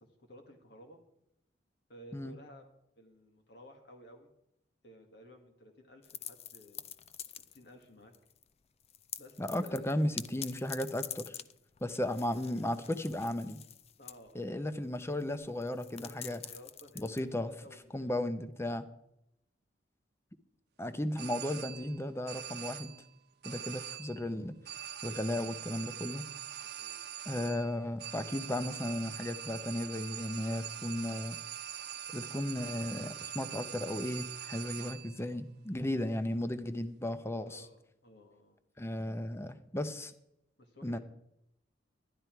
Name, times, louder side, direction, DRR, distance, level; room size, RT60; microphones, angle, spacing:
voice 1, 0.3-1.0 1.9-2.6 3.0-4.3 4.8-6.9 7.3-8.1 9.2-9.9 11.4-11.5 11.8-12.1 14.0-14.4 16.0-18.2 23.4-23.7 26.6-27.0 35.7-35.9 37.3-38.6 40.6-41.0, equal, 65° left, 4 dB, 1.8 m, -55 dB
sound 1, 6.0-7.8 8.1-8.5 8.8-17.9, left 10 dB, 35° left, 0.4 m, -46 dB
voice 2, 9.4-11.4 11.8-13.6 14.3-16.4 17.0-17.5 17.9-18.8 20.8-22.9 23.4-24.5 25.0-26.3 27.3-31.4 32.1-37.6 38.8-40.1 40.8-41.0, left 1 dB, 15° left, 11 dB, 0.7 m, -35 dB
sound 2, 21.2-22.0 22.3-23.1 23.4-24.3 24.6-35.2, right 10 dB, 65° right, 1.0 m, -43 dB
11.5 x 11.0 x 4.6 m, 0.80 s
head